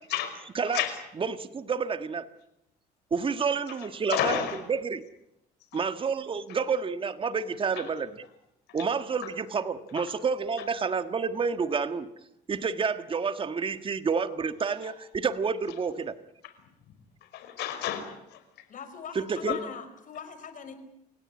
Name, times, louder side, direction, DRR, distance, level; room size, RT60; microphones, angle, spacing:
voice 1, 1.2-2.3 3.1-5.0 5.7-8.2 8.7-12.1 12.5-16.1 19.2-19.6, right 5 dB, 30° right, 11 dB, 1.6 m, -29 dB
voice 2, 4.1-4.6 5.7-5.8 7.8-7.9 17.3-18.4 19.4-19.6, left 11 dB, 80° left, 9 dB, 5.2 m, -30 dB
voice 3, 18.7-20.7, left 6 dB, 50° left, 10 dB, 5.1 m, -42 dB
28.0 x 17.5 x 9.8 m, 0.82 s
cardioid pair, 110°, 17 cm